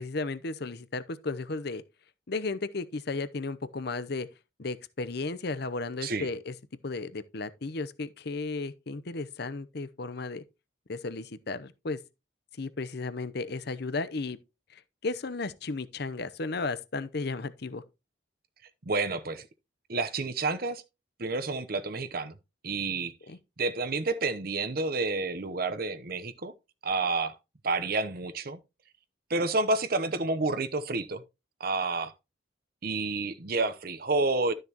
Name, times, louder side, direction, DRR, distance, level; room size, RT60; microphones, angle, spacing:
voice 1, 0.0-1.8 2.3-4.3 4.6-6.5 6.8-10.4 10.9-12.0 12.6-14.4 14.7-17.8 23.3-23.4, left 3 dB, 55° left, 0.7 m, -34 dB
voice 2, 18.8-19.5 19.9-20.8 21.2-22.3 22.6-23.1 23.6-26.5 26.8-27.4 27.6-28.6 29.3-31.2 31.6-32.1 32.8-34.5, right 3 dB, 50° right, 0.8 m, -29 dB
12.5 x 6.6 x 2.9 m
head